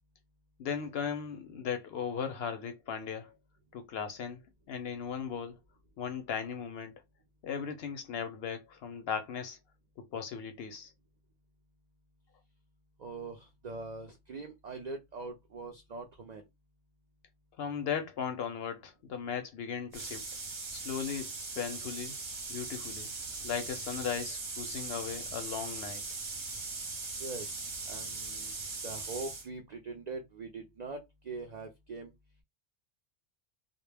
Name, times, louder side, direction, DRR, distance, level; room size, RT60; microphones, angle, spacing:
voice 1, 0.6-3.3 3.7-4.4 4.7-5.6 6.0-6.9 7.4-9.6 10.0-10.9 17.6-20.2 20.7-22.2 22.5-23.1 23.4-26.0, left 7 dB, 65° left, 0.7 m, -37 dB
voice 2, 13.0-16.5 27.2-27.5 27.9-28.5 28.8-32.1, right 3 dB, 70° right, 0.4 m, -42 dB
sound 1, 19.9-29.5, right 3 dB, 45° right, 0.8 m, -40 dB
2.2 x 2.0 x 3.2 m
omnidirectional pair, 1.3 m